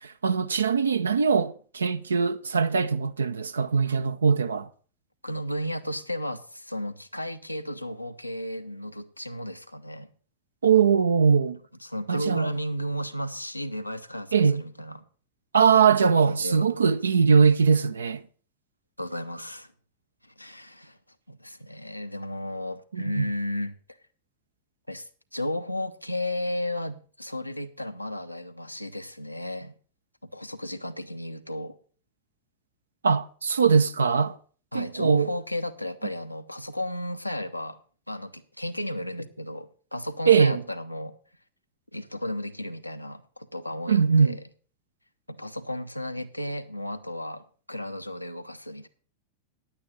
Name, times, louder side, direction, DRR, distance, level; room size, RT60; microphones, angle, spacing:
voice 1, 0.0-4.7 10.6-11.6 12.1-12.5 14.3-14.6 15.5-18.2 22.9-23.2 33.0-34.4 34.7-35.3 40.3-40.6 43.9-44.4, right 6 dB, 75° right, 0.6 m, -21 dB
voice 2, 5.2-10.1 11.8-15.0 16.2-16.8 19.0-19.7 20.2-21.0 21.3-23.7 24.9-29.7 30.3-31.8 34.7-37.8 38.1-41.2 41.9-44.4 45.3-48.9, left 1 dB, 90° left, 0.8 m, -34 dB
10.0 x 8.7 x 6.2 m
figure-of-eight pair, 90°, 0 cm